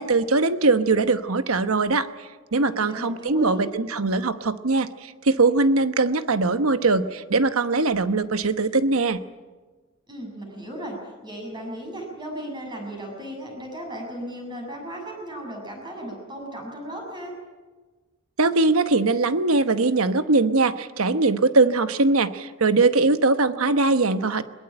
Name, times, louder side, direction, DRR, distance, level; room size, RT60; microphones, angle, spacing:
voice 1, 0.0-2.1 2.5-9.2 18.4-24.4, right 3 dB, 90° right, 11 dB, 1.1 m, -21 dB
voice 2, 2.8-3.7 10.1-11.0 11.2-17.3, right 1 dB, 20° right, 1 dB, 6.9 m, -36 dB
21.5 x 21.5 x 9.0 m, 1.3 s
head